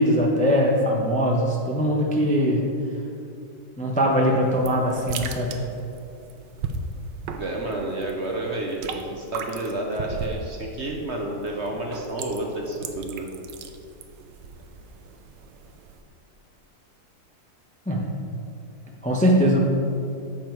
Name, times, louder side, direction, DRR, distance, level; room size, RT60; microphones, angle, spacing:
voice 1, 0.0-2.7 3.8-5.6 17.9-18.2 19.0-19.6, equal, 5° left, -1 dB, 0.7 m, -21 dB
sound 1, 4.4-16.0, right 4 dB, 80° right, 1.4 m, -37 dB
voice 2, 7.4-13.3, right 2 dB, 45° right, 0 dB, 1.1 m, -30 dB
10.5 x 7.3 x 4.6 m, 2.6 s
omnidirectional pair, 1.9 m